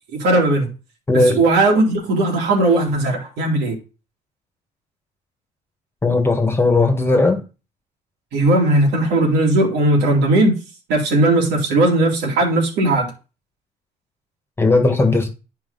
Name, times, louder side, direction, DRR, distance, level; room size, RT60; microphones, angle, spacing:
voice 1, 0.1-0.7 1.1-3.8 8.3-10.6 10.9-13.1, right 2 dB, 85° right, 2.9 m, -17 dB
voice 2, 1.1-1.4 6.0-7.4 14.6-15.3, left 3 dB, 15° left, 1.5 m, -16 dB
10.5 x 4.8 x 4.0 m
cardioid pair, 110°, 17 cm